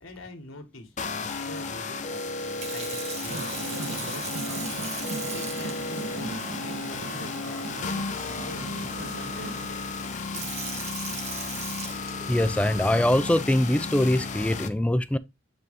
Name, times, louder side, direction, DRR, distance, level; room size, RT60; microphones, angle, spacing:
voice 1, 0.0-7.6 8.2-10.7, left 2 dB, 80° left, 1.8 m, -45 dB
sound 1, 1.0-14.7, left 4 dB, 35° left, 0.7 m, -34 dB
Sink (filling or washing) / Fill (with liquid), 2.4-12.6 13.3-13.6, right 5 dB, 35° right, 1.2 m, -40 dB
sound 2, 3.3-9.7, right 3 dB, 85° right, 1.1 m, -38 dB
voice 2, 12.1-15.2, left 1 dB, 5° left, 0.3 m, -23 dB
7.8 x 3.8 x 3.6 m
head